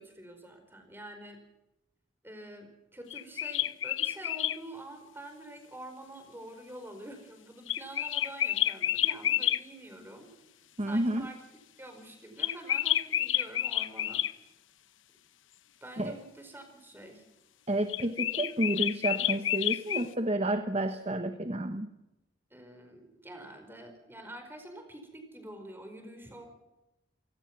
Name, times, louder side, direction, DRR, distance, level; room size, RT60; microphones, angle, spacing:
voice 1, 0.0-1.4 2.2-10.3 10.8-11.4 11.8-14.2 15.8-17.2 22.5-26.5, right 1 dB, 10° right, 5 dB, 4.8 m, -47 dB
sound 1, 3.1-4.6 7.7-9.6 12.4-14.3 17.9-20.1, left 12 dB, 80° left, 0.9 m, -29 dB
voice 2, 10.8-11.3 16.0-16.1 17.7-21.9, right 1 dB, 30° right, 8 dB, 1.1 m, -30 dB
28.5 x 18.0 x 6.0 m, 0.93 s
head